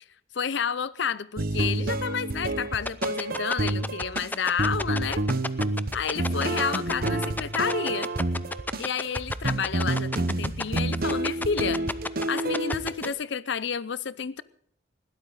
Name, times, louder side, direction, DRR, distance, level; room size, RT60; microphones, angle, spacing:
voice 1, 0.3-5.2 5.9-8.1 8.8-11.8 12.3-14.4, left 6 dB, 65° left, 0.6 m, -30 dB
sound 1, 1.4-13.1, right 2 dB, 50° right, 1.1 m, -29 dB
sound 2, 2.9-13.1, left 2 dB, 10° left, 0.6 m, -30 dB
20.5 x 16.0 x 4.0 m
head